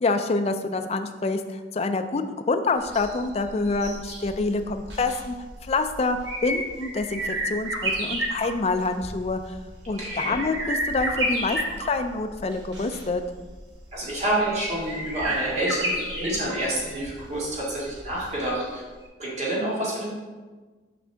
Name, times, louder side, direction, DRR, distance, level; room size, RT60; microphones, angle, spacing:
voice 1, 0.0-5.4 5.6-6.2 6.4-9.6 9.9-13.2, left 3 dB, 35° left, 7 dB, 0.4 m, -26 dB
sound 1, 2.8-18.7 19.0-19.1, right 1 dB, 90° right, 1.4 m, -32 dB
voice 2, 10.0-10.4 13.9-18.8 19.2-20.1, right 1 dB, 40° right, -6 dB, 1.9 m, -28 dB
6.2 x 5.4 x 3.4 m, 1.3 s
head